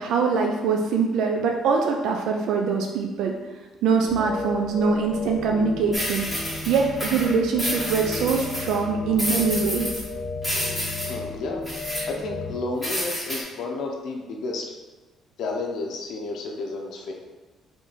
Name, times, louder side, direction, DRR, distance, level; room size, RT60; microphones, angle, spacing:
voice 1, 0.0-3.3 3.8-6.3 6.7-9.9, right 5 dB, 85° right, 2 dB, 0.4 m, -23 dB
sound 1, 4.0-12.5, left 3 dB, 25° left, 1.0 m, -34 dB
sound 2, 5.9-8.8 9.2-10.1 10.4-11.1 11.7-12.0 12.8-13.4, equal, 5° right, 1.2 m, -30 dB
voice 2, 11.1-11.6 12.1-14.6 15.4-17.1, left 3 dB, 70° left, 1 dB, 0.6 m, -31 dB
3.4 x 3.1 x 3.9 m, 1.2 s
cardioid pair, 130°, 0 cm